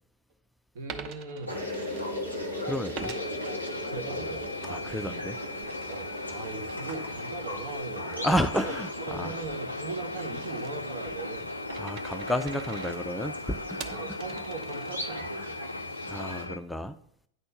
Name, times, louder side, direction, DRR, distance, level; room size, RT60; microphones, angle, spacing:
voice 1, 0.7-1.7 3.8-4.4 5.9-8.7 9.1-11.5 13.9-15.7, right 3 dB, 60° right, 5 dB, 1.3 m, -39 dB
Coin (dropping), 0.9-2.5 2.9-4.5 4.9-15.4, right 7 dB, 40° right, 0.8 m, -47 dB
sound 1, 1.5-16.4, left 1 dB, 90° right, 1.5 m, -39 dB
voice 2, 2.6-3.1 4.6-5.4 8.2-9.4 11.8-14.2 16.1-17.0, equal, 5° left, 8 dB, 0.4 m, -31 dB
sound 2, 3.0-16.6, left 2 dB, 85° left, 0.3 m, -38 dB
9.5 x 4.4 x 6.5 m, 0.64 s
figure-of-eight pair, 90°, 0 cm